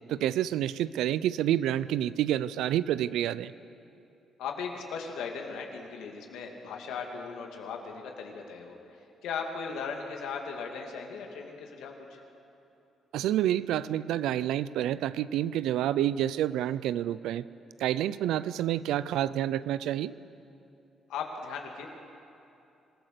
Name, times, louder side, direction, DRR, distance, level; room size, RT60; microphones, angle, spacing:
voice 1, 0.1-3.5 13.1-17.4 17.8-20.1, right 12 dB, 85° right, 17 dB, 0.5 m, -28 dB
voice 2, 4.4-12.2 21.1-21.9, left 5 dB, 90° left, 2 dB, 2.6 m, -38 dB
26.0 x 15.5 x 6.8 m, 2.8 s
cardioid pair, 90°, 0 cm